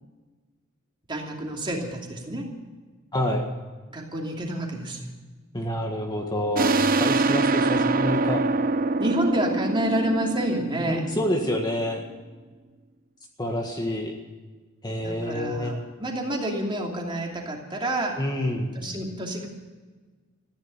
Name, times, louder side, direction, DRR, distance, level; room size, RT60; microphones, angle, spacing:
voice 1, 1.1-2.5 3.9-5.1 9.0-11.1 15.0-18.2 18.7-19.5, right 1 dB, 25° right, 0 dB, 2.8 m, -29 dB
voice 2, 3.1-3.5 5.5-8.4 10.9-12.0 13.4-14.2 14.8-15.7 18.2-18.7, left 1 dB, 20° left, 1 dB, 1.6 m, -27 dB
sound 1, 6.5-11.9, right 3 dB, 45° right, 0.7 m, -24 dB
14.5 x 10.5 x 8.5 m, 1.3 s
head